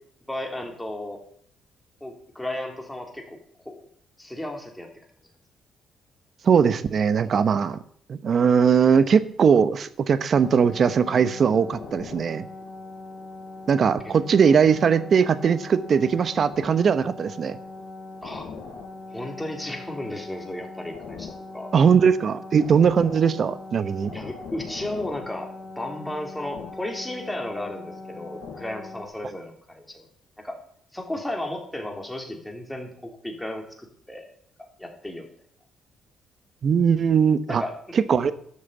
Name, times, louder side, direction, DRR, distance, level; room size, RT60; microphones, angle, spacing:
voice 1, 0.3-1.2 2.0-3.4 3.6-3.9 4.2-4.9 18.2-18.5 19.1-21.7 24.1-30.1 30.4-30.6 30.9-34.3 34.8-35.3 37.5-37.7, left 1 dB, 5° left, 2 dB, 3.2 m, -34 dB
voice 2, 6.4-7.8 8.1-12.5 13.7-17.6 21.7-24.1 36.6-37.6 37.9-38.3, right 6 dB, 50° right, 13 dB, 1.0 m, -20 dB
sound 1, 10.4-29.1, left 3 dB, 60° left, 4.6 m, -40 dB
12.5 x 6.6 x 8.1 m, 0.62 s
cardioid pair, 90°, 0 cm